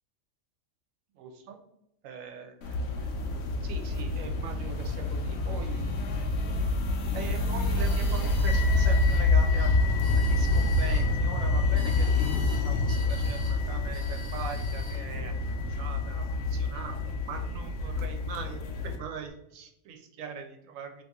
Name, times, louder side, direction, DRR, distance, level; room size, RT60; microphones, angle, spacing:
voice 1, 1.2-1.6 2.0-3.1 3.6-6.3 7.1-9.9 10.1-12.4 12.6-15.3 15.8-16.2 16.5-17.0 17.2-21.0, right 6 dB, 80° right, 4 dB, 1.0 m, -42 dB
sound 1, 2.6-19.0, left 2 dB, 85° left, 1.0 m, -27 dB
sound 2, 7.7-9.2 9.9-11.1 11.8-12.6 12.9-13.6 13.9-15.0, left 1 dB, 20° left, 0.8 m, -48 dB
sound 3, 8.5-17.7, left 10 dB, 65° left, 0.9 m, -42 dB
2.8 x 2.7 x 3.5 m, 0.84 s
omnidirectional pair, 1.4 m